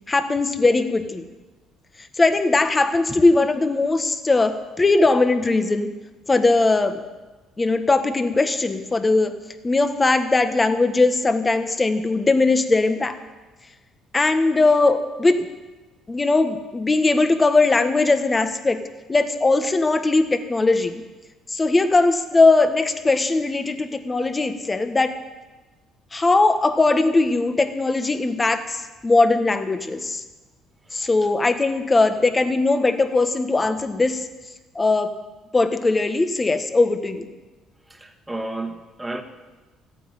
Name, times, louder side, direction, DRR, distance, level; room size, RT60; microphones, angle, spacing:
voice 1, 0.1-1.2 2.1-5.9 6.3-7.0 7.6-9.4 9.6-13.2 14.1-15.5 16.1-18.8 19.1-21.0 21.5-25.1 26.1-30.2 30.9-34.2 34.7-35.1 35.5-37.3, left 3 dB, 25° left, 8 dB, 1.5 m, -19 dB
voice 2, 37.9-39.2, right 2 dB, 15° right, 4 dB, 1.9 m, -32 dB
14.5 x 9.3 x 9.1 m, 1.2 s
supercardioid pair, 75°, 0 cm